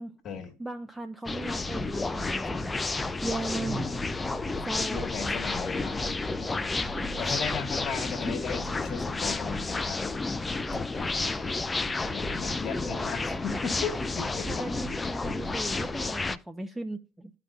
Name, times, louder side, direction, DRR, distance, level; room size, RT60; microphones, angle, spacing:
voice 1, 0.6-2.8 3.0-4.0 4.3-5.0 6.7-7.2 14.5-17.3, right 2 dB, 10° right, 0.9 m, -38 dB
sound 1, 1.2-16.4, left 3 dB, 20° left, 0.6 m, -31 dB
voice 2, 3.6-4.0 4.9-6.0 6.4-6.6 7.2-10.1 10.7-11.8 12.1-14.5, left 5 dB, 45° left, 1.6 m, -36 dB
14.5 x 5.0 x 2.4 m
figure-of-eight pair, 55°, 0 cm